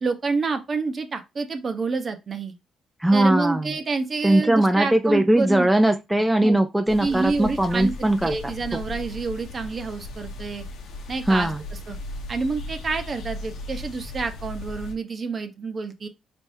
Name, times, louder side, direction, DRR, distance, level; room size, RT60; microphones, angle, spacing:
voice 1, 0.0-2.5 3.1-5.7 6.4-6.5 7.0-10.6 11.1-11.5 11.9-12.0 12.3-16.1, right 4 dB, 40° right, 0.8 m, -28 dB
voice 2, 3.0-3.7 4.2-8.4 11.3-11.6, right 1 dB, 5° right, 0.4 m, -20 dB
sound 1, 6.9-14.9, left 2 dB, 80° left, 0.9 m, -37 dB
4.3 x 3.5 x 2.7 m
cardioid pair, 90°, 0 cm